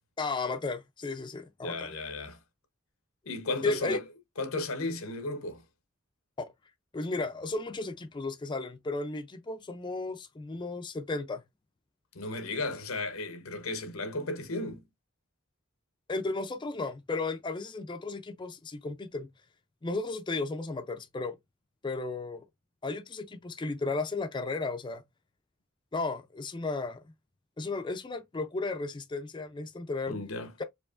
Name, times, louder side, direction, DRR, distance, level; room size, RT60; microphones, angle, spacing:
voice 1, 0.2-1.9 3.6-4.0 6.4-6.5 6.9-11.4 16.1-19.3 19.8-21.4 21.8-22.4 22.8-25.0 25.9-27.0 27.6-30.2 30.6-30.7, left 3 dB, 20° left, 0.4 m, -34 dB
voice 2, 1.6-2.4 3.3-4.0 4.4-5.6 12.1-14.8 30.1-30.5, left 2 dB, 85° left, 0.9 m, -34 dB
4.7 x 2.8 x 2.4 m
head